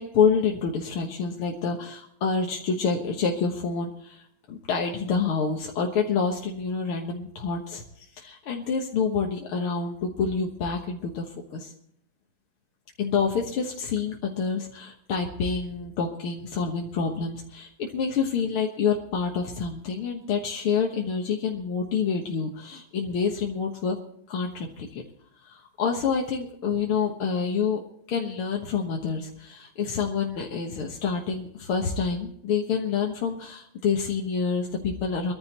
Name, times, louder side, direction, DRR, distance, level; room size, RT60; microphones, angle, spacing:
voice 1, 0.0-4.2 4.5-7.8 8.2-11.7 13.0-24.0 24.3-25.0 25.4-27.8 28.1-35.3, left 5 dB, 90° left, 0 dB, 2.3 m, -27 dB
23.5 x 14.0 x 3.0 m, 0.69 s
omnidirectional pair, 2.3 m